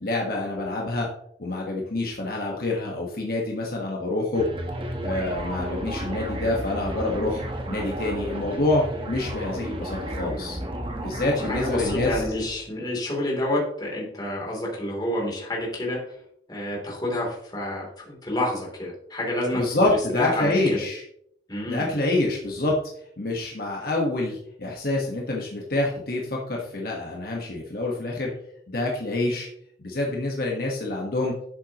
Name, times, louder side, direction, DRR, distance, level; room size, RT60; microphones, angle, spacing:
voice 1, 0.0-1.1 1.4-4.5 5.0-7.4 7.7-10.6 11.0-12.2 19.5-21.0 21.7-22.8 23.2-28.3 28.7-29.5 29.8-31.3, left 2 dB, 55° left, -2 dB, 1.5 m, -26 dB
sound 1, 4.3-12.6, right 1 dB, 30° right, 1.3 m, -33 dB
voice 2, 11.5-16.0 16.5-20.8 21.5-21.9, left 1 dB, 25° left, -3 dB, 3.3 m, -29 dB
11.5 x 8.1 x 3.1 m, 0.71 s
head